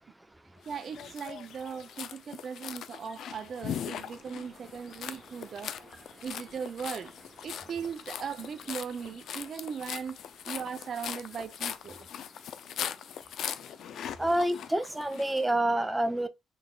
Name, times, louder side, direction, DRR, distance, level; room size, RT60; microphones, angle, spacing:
sound 1, 0.7-15.4, left 9 dB, 70° left, 0.4 m, -40 dB
voice 1, 0.7-5.8 6.2-7.1 7.4-12.1, right 6 dB, 55° right, 0.4 m, -38 dB
sound 2, 3.6-9.1, right 2 dB, 25° right, 1.2 m, -57 dB
voice 2, 14.2-16.3, right 1 dB, 10° right, 0.6 m, -27 dB
3.8 x 3.4 x 2.3 m
cardioid pair, 90°, 0 cm